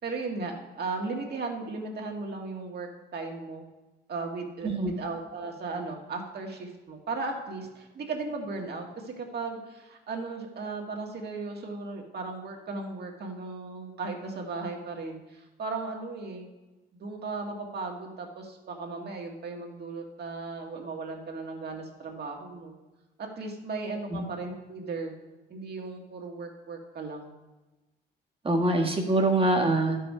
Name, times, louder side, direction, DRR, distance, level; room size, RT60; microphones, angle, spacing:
voice 1, 0.0-3.7 4.1-16.5 16.9-22.7 23.2-25.1 25.5-27.3, right 3 dB, 55° right, 1 dB, 1.8 m, -36 dB
voice 2, 4.6-5.0 24.1-24.2 28.4-30.0, right 2 dB, 25° right, 1 dB, 1.6 m, -24 dB
11.5 x 5.6 x 5.4 m, 1.1 s
cardioid pair, 90°, 20 cm